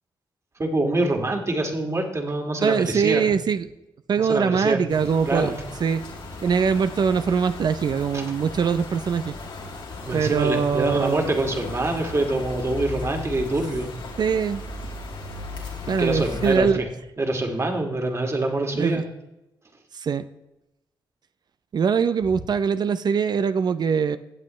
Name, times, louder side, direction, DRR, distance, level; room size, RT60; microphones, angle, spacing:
voice 1, 0.6-3.3 4.2-4.8 5.3-5.5 8.1-8.2 10.0-13.9 15.8-16.9 17.2-19.0, right 2 dB, 35° right, 3 dB, 2.3 m, -25 dB
voice 2, 2.6-3.7 4.1-5.5 5.8-6.0 6.4-9.3 10.1-11.2 14.2-14.6 15.9-16.8 18.7-19.0 19.9-20.2 21.7-24.2, right 6 dB, 55° right, 12 dB, 0.5 m, -22 dB
sound 1, 4.9-16.6, left 3 dB, 80° left, 2.8 m, -36 dB
17.0 x 7.7 x 3.2 m, 0.90 s
cardioid pair, 75°, 9 cm